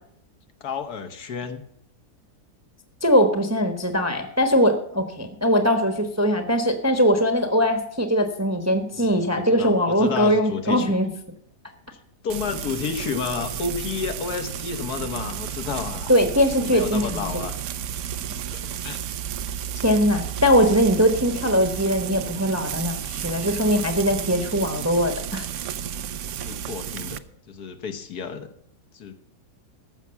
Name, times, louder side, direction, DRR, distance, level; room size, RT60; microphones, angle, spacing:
voice 1, 0.6-1.6 8.9-10.9 12.2-16.1 16.6-17.7 18.5-19.0 26.4-28.5 28.9-29.1, left 6 dB, 70° left, 8 dB, 1.6 m, -31 dB
voice 2, 3.0-11.1 16.1-17.3 19.7-25.5, equal, 10° right, 7 dB, 0.9 m, -21 dB
Frying (food), 12.3-27.2, right 9 dB, 65° right, 0.8 m, -32 dB
14.0 x 6.1 x 6.9 m, 0.71 s
omnidirectional pair, 1.7 m